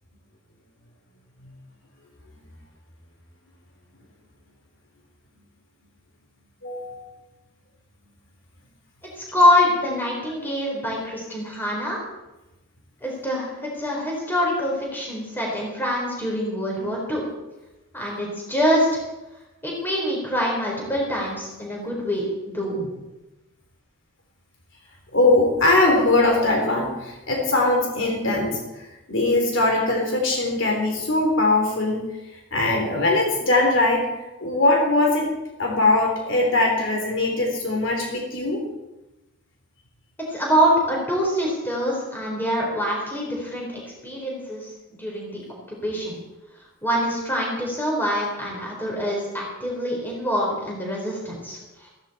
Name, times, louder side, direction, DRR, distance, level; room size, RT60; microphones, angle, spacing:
voice 1, 6.6-7.0 25.1-28.6 29.1-32.1 32.5-34.0 34.4-35.3 35.6-38.6, left 2 dB, 65° left, 0 dB, 3.4 m, -21 dB
voice 2, 9.2-12.0 13.0-17.3 17.9-19.0 19.6-22.3 22.5-23.0 40.3-45.4 45.7-46.2 46.8-51.9, equal, 10° left, -3 dB, 4.0 m, -25 dB
15.5 x 15.0 x 4.3 m, 1.0 s
head